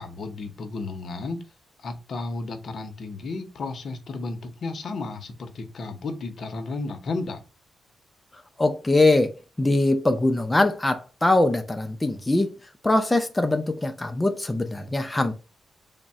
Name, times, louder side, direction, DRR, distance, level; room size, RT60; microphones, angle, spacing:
voice 1, 0.0-1.4 1.8-7.4, left 3 dB, 55° left, 0.6 m, -33 dB
voice 2, 8.6-12.5 12.8-15.3, left 2 dB, 10° left, 0.4 m, -22 dB
3.5 x 2.0 x 4.0 m
wide cardioid pair, 150°, 0 cm